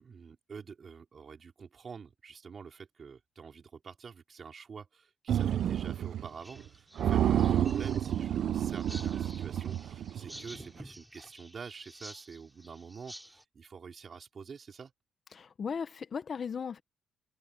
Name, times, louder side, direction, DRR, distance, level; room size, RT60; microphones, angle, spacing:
voice 1, 0.0-14.9, right 6 dB, 45° right, 4.5 m, -47 dB
sound 1, 5.3-6.3 6.6-6.7 7.0-10.4, right 10 dB, 65° right, 0.8 m, -29 dB
sound 2, 6.3-13.4, right 1 dB, 5° right, 7.9 m, -51 dB
voice 2, 15.3-16.8, left 6 dB, 45° left, 1.4 m, -37 dB
cardioid pair, 90°, 0 cm